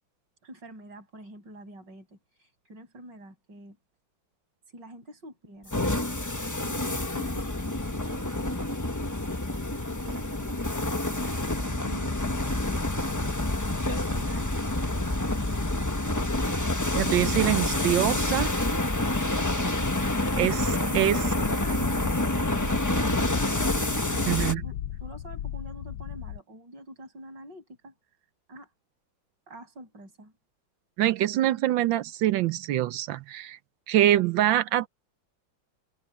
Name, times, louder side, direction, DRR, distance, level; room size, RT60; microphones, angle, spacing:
voice 1, 0.4-3.8 4.7-5.8 6.6-8.7 9.9-13.4 13.9-16.7 20.8-22.2 23.8-27.9 28.5-28.7 29.5-30.3, right 1 dB, 60° right, 8.0 m, -47 dB
sound 1, 5.7-24.5, left 2 dB, 15° left, 0.8 m, -28 dB
voice 2, 16.9-18.6 20.4-21.2 24.3-24.6 31.0-33.6 33.9-34.9, right 13 dB, 75° right, 1.3 m, -24 dB
sound 2, 21.4-26.4, left 11 dB, 75° left, 1.3 m, -38 dB
omnidirectional pair, 2.2 m